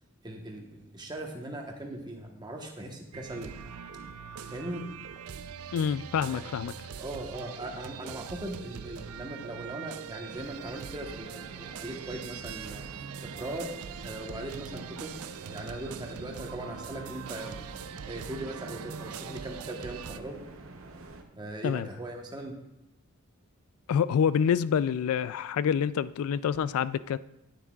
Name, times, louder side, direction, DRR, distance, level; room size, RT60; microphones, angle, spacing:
voice 1, 0.2-3.6 4.5-4.8 6.3-6.6 7.0-13.1 13.3-13.7 14.0-15.2 15.5-17.6 18.0-20.4 21.3-22.5, right 1 dB, 20° right, 1.1 m, -39 dB
sound 1, 3.1-20.2, right 7 dB, 80° right, 0.4 m, -42 dB
voice 2, 5.7-6.7 21.6-21.9 23.9-27.2, left 7 dB, 80° left, 0.3 m, -27 dB
sound 2, 10.3-21.2, right 2 dB, 65° right, 0.8 m, -47 dB
9.8 x 9.7 x 2.4 m
head